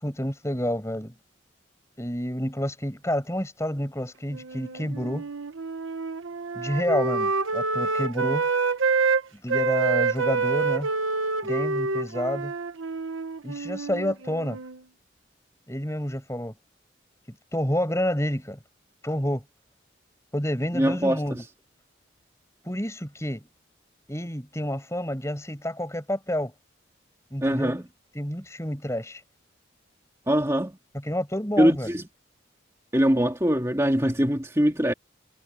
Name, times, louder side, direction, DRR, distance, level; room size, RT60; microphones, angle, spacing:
voice 1, 0.0-1.1 2.0-5.3 6.5-8.5 9.4-10.9 11.4-12.5 13.4-14.6 15.7-16.5 17.5-18.6 19.0-19.4 20.3-21.4 22.6-23.4 24.1-26.5 27.3-27.7 28.1-29.2 31.0-31.9, equal, 15° left, 6.3 m, -29 dB
Wind instrument woodwind instrument, 4.3-9.2 9.5-14.8, right 4 dB, 85° right, 1.2 m, -27 dB
voice 2, 20.7-21.4 27.4-27.8 30.3-30.8 31.6-32.0 32.9-34.9, equal, 15° right, 2.4 m, -22 dB
head